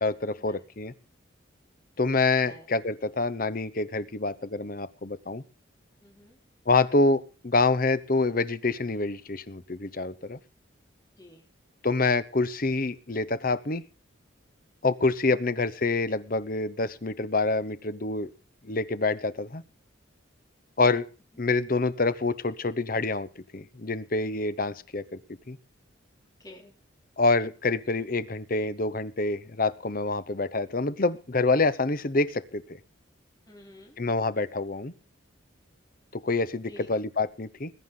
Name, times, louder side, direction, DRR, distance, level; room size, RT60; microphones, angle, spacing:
voice 1, 0.0-0.9 2.0-5.4 6.7-10.4 11.8-13.8 14.8-18.3 18.6-19.6 20.8-21.1 21.4-23.3 23.5-25.2 25.5-25.6 27.2-32.8 34.0-34.9 36.1-37.7, left 3 dB, 45° left, 14 dB, 0.9 m, -26 dB
voice 2, 6.0-6.4 11.2-11.4 26.4-26.7 33.5-34.0 36.7-36.9, left 1 dB, 20° left, 0 dB, 4.0 m, -49 dB
21.0 x 9.3 x 3.8 m, 0.37 s
head